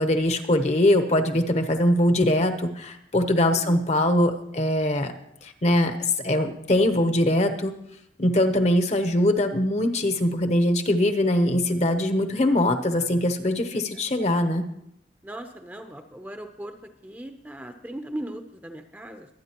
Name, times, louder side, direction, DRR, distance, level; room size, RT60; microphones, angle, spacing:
voice 1, 0.0-5.1 5.4-6.0 6.2-7.7 8.2-14.7, left 1 dB, 35° left, 7 dB, 0.9 m, -22 dB
voice 2, 3.4-3.8 13.7-13.8 15.2-16.7 17.0-19.3, right 1 dB, 10° right, 6 dB, 0.7 m, -38 dB
23.5 x 9.2 x 3.0 m, 0.75 s
head